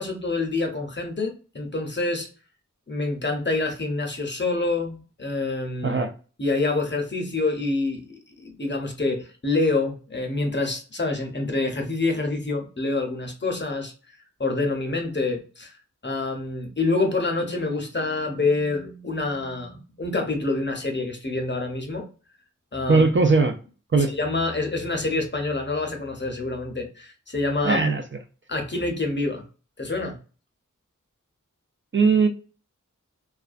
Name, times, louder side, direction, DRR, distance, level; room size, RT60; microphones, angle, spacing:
voice 1, 0.0-2.3 2.9-6.0 6.4-8.0 8.4-13.9 14.4-15.7 16.0-22.1 22.7-23.0 24.1-27.9 28.5-29.4 29.8-30.2, left 3 dB, 35° left, 3 dB, 0.7 m, -26 dB
voice 2, 22.9-23.5 23.9-24.1 27.6-28.0 31.9-32.3, right 4 dB, 40° right, 6 dB, 0.4 m, -19 dB
2.4 x 2.2 x 2.4 m, 0.36 s
wide cardioid pair, 40°, 31 cm